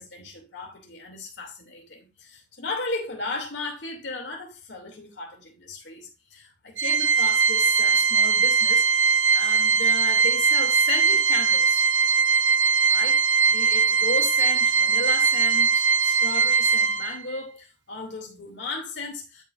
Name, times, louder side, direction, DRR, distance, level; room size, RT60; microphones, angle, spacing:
voice 1, 0.0-11.9 12.9-19.4, left 3 dB, 80° left, 2.7 m, -35 dB
Organ, 6.8-17.4, right 5 dB, 90° right, 1.0 m, -21 dB
11.5 x 5.0 x 2.5 m
head